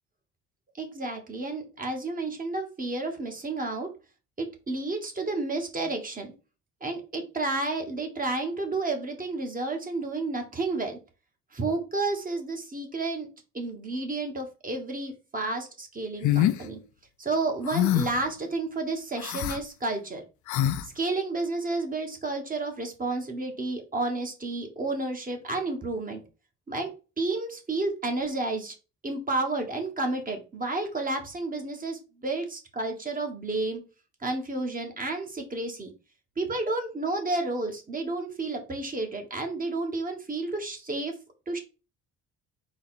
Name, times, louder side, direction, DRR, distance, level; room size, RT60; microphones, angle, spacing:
voice 1, 0.8-3.9 4.4-6.3 6.8-11.0 11.5-13.3 13.5-16.8 17.2-20.2 20.8-26.2 26.7-28.7 29.0-33.8 34.2-35.9 36.4-41.1 41.5-41.6, right 2 dB, 30° right, 3 dB, 1.3 m, -31 dB
sound 1, 16.2-16.6 17.7-18.2 19.2-19.6 20.5-20.8, left 12 dB, 75° left, 0.5 m, -24 dB
4.0 x 2.4 x 4.1 m, 0.31 s
cardioid pair, 90°, 30 cm